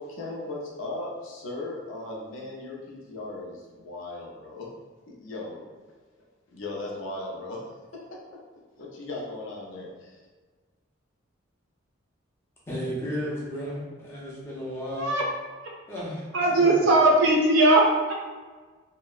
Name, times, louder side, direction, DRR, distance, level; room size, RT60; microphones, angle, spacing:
voice 1, 0.0-4.7 5.1-5.7 6.5-7.6 7.9-8.0 8.8-10.2, left 2 dB, 80° left, -2 dB, 0.5 m, -37 dB
voice 2, 12.7-15.1 15.9-16.8, equal, 15° left, -7 dB, 0.6 m, -34 dB
voice 3, 16.3-18.2, right 2 dB, 75° right, -1 dB, 0.5 m, -19 dB
2.7 x 2.1 x 2.3 m, 1.4 s
head